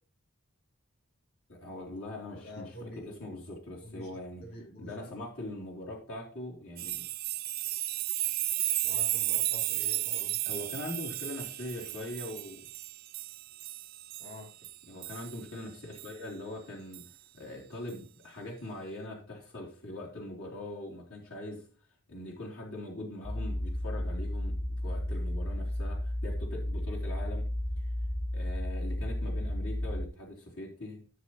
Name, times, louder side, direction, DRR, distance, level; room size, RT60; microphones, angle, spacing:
voice 1, 1.5-4.4 4.8-7.0 10.4-12.7 14.9-17.0 17.3-21.6 22.1-24.6 24.8-27.4 28.3-31.0, left 1 dB, 70° left, -4 dB, 3.6 m, -42 dB
voice 2, 2.3-3.3 3.8-5.2 8.8-10.4 14.2-14.5, left 1 dB, 50° left, -1 dB, 4.0 m, -47 dB
sound 1, 6.8-15.4 16.0-16.1 16.9-17.0, right 15 dB, 45° right, 0.5 m, -33 dB
sound 2, 23.2-30.1, left 1 dB, 30° left, 1.3 m, -33 dB
16.0 x 7.7 x 3.2 m, 0.39 s
head